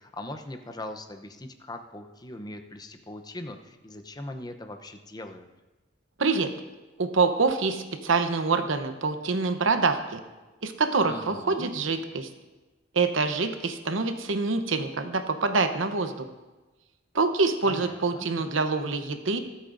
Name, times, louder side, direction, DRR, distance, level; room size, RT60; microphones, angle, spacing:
voice 1, 0.0-5.5 11.1-11.7 17.6-18.3, left 1 dB, 20° left, 6 dB, 0.7 m, -40 dB
voice 2, 6.2-6.5 7.0-10.2 10.6-12.3 12.9-16.1 17.1-19.4, right 4 dB, 80° right, 8 dB, 0.9 m, -25 dB
23.5 x 8.4 x 2.6 m, 1.2 s
head